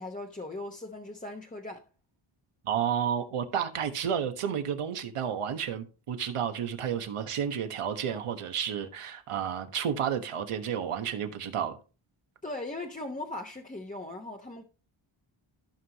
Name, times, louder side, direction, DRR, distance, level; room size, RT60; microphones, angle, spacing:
voice 1, 0.0-1.8 12.4-14.6, left 2 dB, 15° left, 0.9 m, -39 dB
voice 2, 2.6-11.8, right 8 dB, 90° right, 1.4 m, -31 dB
14.5 x 5.5 x 3.0 m
wide cardioid pair, 110°, 50 cm